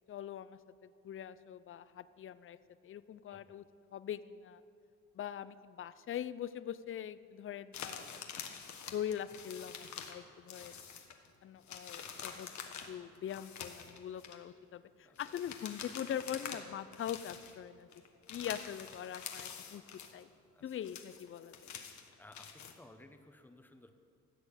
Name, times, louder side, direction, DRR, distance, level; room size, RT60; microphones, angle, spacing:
voice 1, 0.1-2.6 2.8-3.6 3.9-4.6 5.1-8.2 8.9-10.8 11.4-12.5 12.9-17.9 18.3-19.8 20.1-20.3 20.6-21.5, left 10 dB, 45° left, 15 dB, 0.5 m, -42 dB
sound 1, 7.7-10.2 10.5-11.3 11.6-14.4 15.2-16.7 16.9-17.6 17.9-20.2 20.6-22.8, left 7 dB, 70° left, 1.4 m, -47 dB
voice 2, 22.2-24.0, left 1 dB, 5° left, 7 dB, 1.0 m, -58 dB
15.0 x 6.3 x 8.7 m, 2.5 s
cardioid pair, 90°, 30 cm